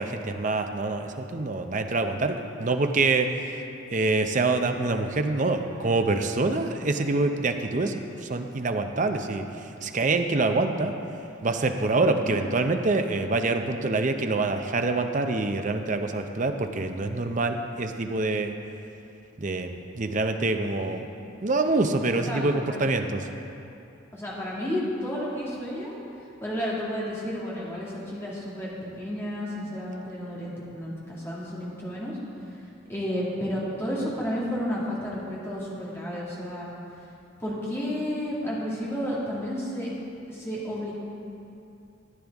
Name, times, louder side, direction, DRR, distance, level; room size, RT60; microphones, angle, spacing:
voice 1, 0.0-3.6 3.9-9.4 9.8-10.9 11.4-18.5 19.4-21.0 21.4-23.2, right 3 dB, 35° right, 6 dB, 0.5 m, -26 dB
voice 2, 12.1-12.4 20.7-20.9 21.9-22.9 24.1-25.9 26.4-32.2 32.5-36.7 37.4-39.9 40.3-40.9, equal, 10° left, -7 dB, 2.0 m, -32 dB
14.0 x 9.6 x 3.5 m, 2.7 s
head